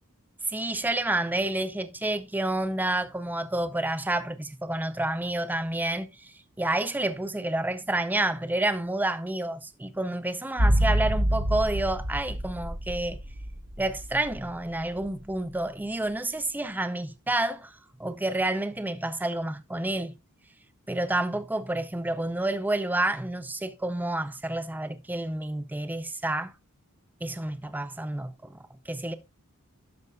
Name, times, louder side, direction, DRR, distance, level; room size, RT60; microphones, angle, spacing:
voice 1, 0.5-13.2 13.8-20.1 20.9-26.5 27.2-29.1, right 1 dB, 10° right, 0.5 m, -29 dB
sound 1, 10.6-14.8 15.1-15.2, right 1 dB, 90° right, 1.9 m, -27 dB
12.0 x 6.5 x 2.3 m
head